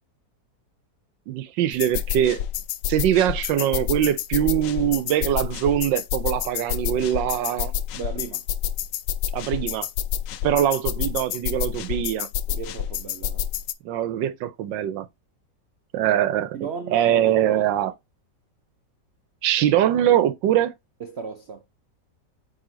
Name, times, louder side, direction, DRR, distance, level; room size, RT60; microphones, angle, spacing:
voice 1, 1.3-2.4 2.9-7.7 9.3-9.9 10.4-12.3 13.8-15.1 15.9-16.6 16.9-17.9 19.4-20.7, right 11 dB, 85° right, 1.5 m, -22 dB
sound 1, 1.7-13.7, left 10 dB, 80° left, 1.3 m, -29 dB
voice 2, 7.9-8.4 12.5-13.4 16.5-17.7 21.0-21.6, right 6 dB, 60° right, 0.7 m, -35 dB
9.1 x 3.5 x 3.8 m
omnidirectional pair, 1.9 m